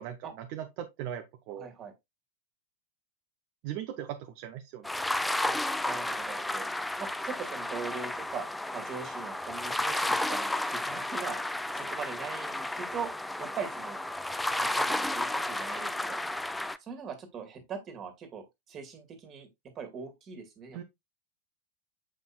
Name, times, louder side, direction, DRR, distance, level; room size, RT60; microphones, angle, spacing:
voice 1, 0.0-1.7 3.6-4.9 20.7-20.8, right 10 dB, 45° right, 0.8 m, -39 dB
voice 2, 1.5-1.9 5.4-5.6 5.8-6.7 7.0-8.5 8.7-11.4 11.7-13.1 13.4-14.0 14.6-16.2 16.8-19.5 19.8-20.8, right 6 dB, 30° right, 2.0 m, -41 dB
sound 1, 4.8-16.8, left 1 dB, 5° left, 0.4 m, -32 dB
7.6 x 5.4 x 2.3 m
figure-of-eight pair, 90°, 0 cm